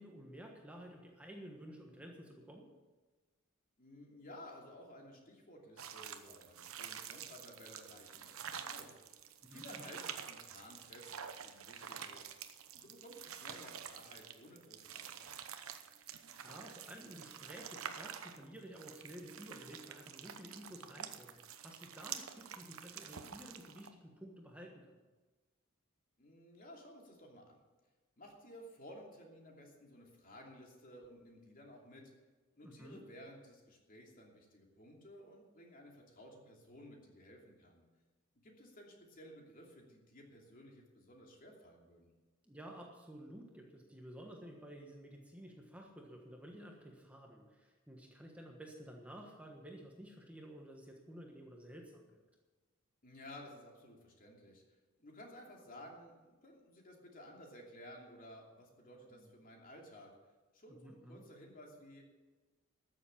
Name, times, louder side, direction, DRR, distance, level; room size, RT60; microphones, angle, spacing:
voice 1, 0.0-2.7 9.4-9.9 16.0-24.9 32.6-33.0 42.4-52.2 59.1-59.3 60.7-61.2, equal, 5° right, 0 dB, 1.3 m, -52 dB
voice 2, 3.8-12.3 12.7-15.4 26.2-27.6 28.2-32.0 32.5-37.8 38.4-42.1 53.0-54.6 55.0-60.1 60.5-62.0, equal, 40° left, 0 dB, 2.8 m, -55 dB
sound 1, 5.8-23.9, right 8 dB, 80° right, 0.9 m, -48 dB
13.5 x 7.3 x 8.6 m, 1.3 s
head